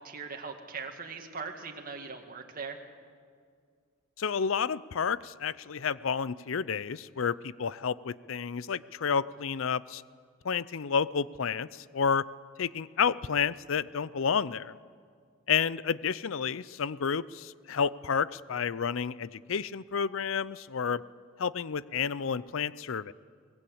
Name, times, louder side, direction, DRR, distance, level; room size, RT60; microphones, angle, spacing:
voice 1, 0.0-2.8, right 5 dB, 40° right, 3 dB, 2.1 m, -40 dB
voice 2, 4.2-10.0 10.4-12.2 12.6-14.7 15.5-21.0 21.4-23.1, left 6 dB, 65° left, 19 dB, 0.5 m, -30 dB
23.0 x 19.5 x 8.6 m, 2.1 s
head